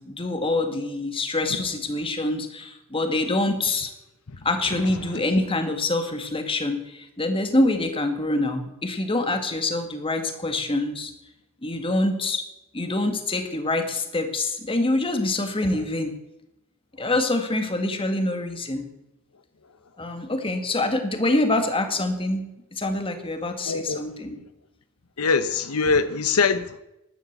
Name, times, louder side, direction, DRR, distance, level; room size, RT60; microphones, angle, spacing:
voice 1, 0.0-3.9 4.4-11.1 11.6-12.4 12.7-16.1 17.0-18.9 20.0-24.4, left 2 dB, 25° left, 6 dB, 2.0 m, -25 dB
voice 2, 23.6-24.0 25.2-26.8, left 4 dB, 90° left, 12 dB, 0.9 m, -23 dB
13.0 x 11.5 x 8.1 m, 0.90 s
head